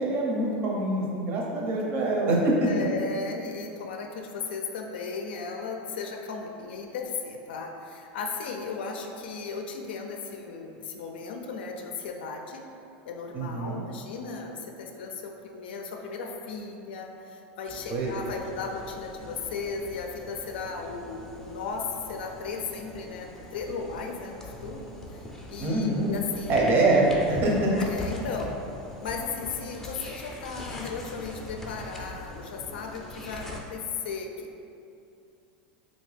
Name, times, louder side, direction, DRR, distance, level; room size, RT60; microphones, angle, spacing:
voice 1, 0.0-2.8 13.3-13.8 17.9-18.1 25.6-26.1 26.5-27.7, right 2 dB, 45° right, -3 dB, 0.7 m, -24 dB
voice 2, 2.6-12.6 13.0-24.8 25.1-26.6 27.8-28.6 29.0-34.6, left 4 dB, 90° left, 2 dB, 0.4 m, -36 dB
sound 1, 17.7-33.6, left 2 dB, 5° left, 0.4 m, -42 dB
3.1 x 2.6 x 3.2 m, 2.7 s
supercardioid pair, 120°, 5 cm